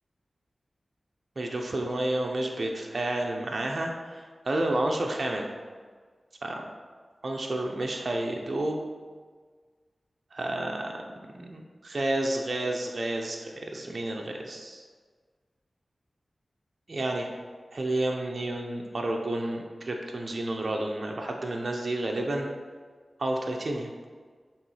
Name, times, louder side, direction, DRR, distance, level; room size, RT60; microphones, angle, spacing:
voice 1, 1.4-5.5 6.4-6.6 7.2-8.8 10.3-11.0 11.3-14.8 16.9-17.3 17.7-22.5 23.2-23.9, right 1 dB, 60° right, 1 dB, 0.7 m, -30 dB
6.9 x 3.1 x 4.8 m, 1.5 s
cardioid pair, 45°, 0 cm